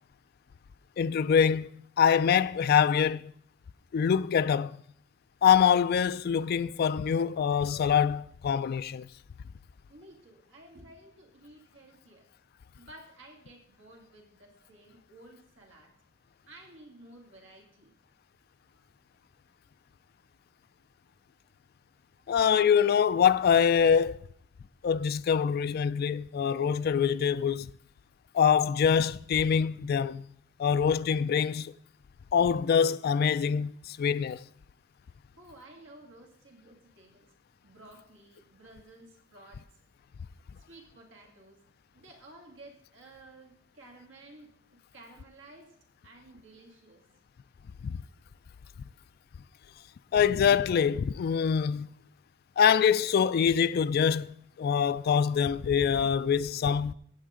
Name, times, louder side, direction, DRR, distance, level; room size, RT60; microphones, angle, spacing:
voice 1, 1.0-1.7 2.0-3.2 3.9-4.8 5.4-9.1 22.3-24.2 24.8-27.7 28.3-30.2 30.6-31.7 32.3-34.4 47.8-48.0 50.1-51.9 52.6-56.9, left 7 dB, 50° left, 0.3 m, -24 dB
voice 2, 9.9-12.3 12.8-15.9 16.5-17.9 18.7-18.9 35.4-37.3 37.6-39.7 40.6-41.6 41.9-45.8 46.0-47.0, right 2 dB, 70° right, 2.4 m, -53 dB
15.0 x 8.9 x 3.7 m
head